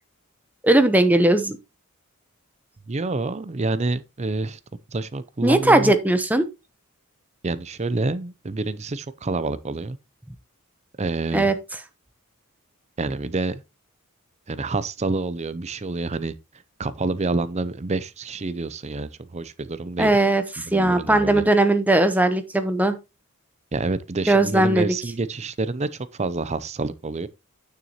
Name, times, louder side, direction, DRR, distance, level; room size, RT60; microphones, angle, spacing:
voice 1, 0.6-1.6 5.4-6.5 11.3-11.5 20.0-23.0 24.3-24.9, right 1 dB, 5° right, 0.8 m, -18 dB
voice 2, 2.9-4.6 4.9-5.9 7.4-10.0 11.0-11.5 13.0-13.6 14.5-16.3 16.8-20.1 20.6-21.4 23.7-27.3, right 3 dB, 30° right, 0.5 m, -27 dB
9.3 x 6.7 x 3.0 m
head